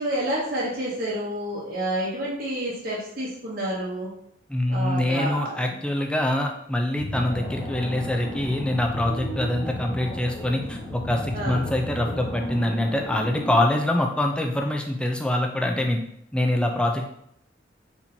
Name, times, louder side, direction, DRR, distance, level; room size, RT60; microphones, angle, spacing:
voice 1, 0.0-4.1 4.7-5.8 11.3-11.6, right 1 dB, 45° right, -7 dB, 0.9 m, -29 dB
voice 2, 4.5-16.0 16.3-17.0, left 1 dB, 5° left, 2 dB, 0.4 m, -25 dB
sound 1, 7.0-12.6, left 2 dB, 85° left, 0.6 m, -35 dB
sound 2, 7.1-13.7, equal, 20° left, 0.8 m, -36 dB
4.4 x 4.2 x 2.7 m, 0.72 s
head